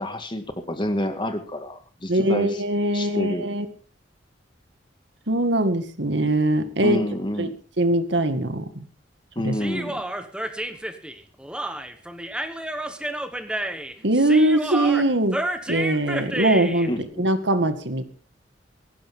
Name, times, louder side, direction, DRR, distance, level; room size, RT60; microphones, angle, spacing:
voice 1, 0.0-2.6 2.9-3.5 6.8-7.5 9.4-10.0 16.9-17.2, left 1 dB, 25° left, 6 dB, 2.0 m, -28 dB
voice 2, 2.1-3.7 5.3-7.0 7.4-7.5 7.8-8.9 9.4-9.6 14.0-15.4 15.7-16.9 17.2-18.0, right 1 dB, 75° right, 9 dB, 2.0 m, -22 dB
Human voice, 9.5-16.9, right 1 dB, 5° right, 1.2 m, -30 dB
18.5 x 15.5 x 3.7 m, 0.38 s
head